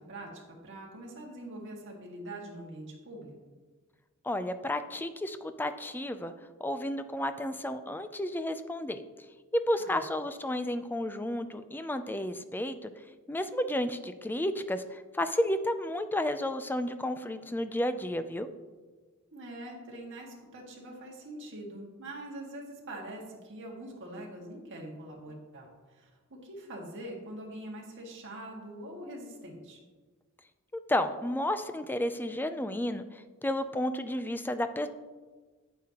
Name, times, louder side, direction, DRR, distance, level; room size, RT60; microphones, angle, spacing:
voice 1, 0.6-3.3 9.8-10.0 19.3-25.7 26.0-26.1 26.4-29.8, right 1 dB, 55° right, -1 dB, 1.8 m, -43 dB
voice 2, 4.2-6.3 6.6-9.0 9.5-12.9 13.3-18.5 30.7-34.9, left 1 dB, 10° left, 10 dB, 0.4 m, -32 dB
9.1 x 8.5 x 2.9 m, 1.3 s
head